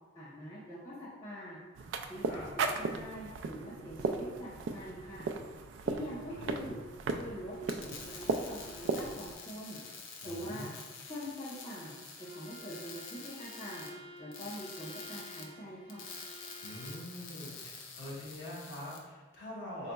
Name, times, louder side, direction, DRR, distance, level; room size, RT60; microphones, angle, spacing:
voice 1, 0.1-1.6 2.1-5.3 5.8-6.8 7.1-7.6 7.8-9.8 10.2-10.7 11.1-13.9 14.2-16.0, equal, 20° left, -9 dB, 0.7 m, -44 dB
sound 1, 1.8-9.3, right 4 dB, 70° right, 0.3 m, -37 dB
voice 2, 6.3-6.7 10.2-10.7 16.6-19.9, left 1 dB, 55° left, -7 dB, 1.4 m, -44 dB
sound 2, 7.5-19.0, left 4 dB, 80° left, 0.6 m, -48 dB
Bowed string instrument, 12.2-17.1, right 1 dB, 25° right, 0.8 m, -52 dB
4.0 x 4.0 x 2.3 m, 1.3 s
head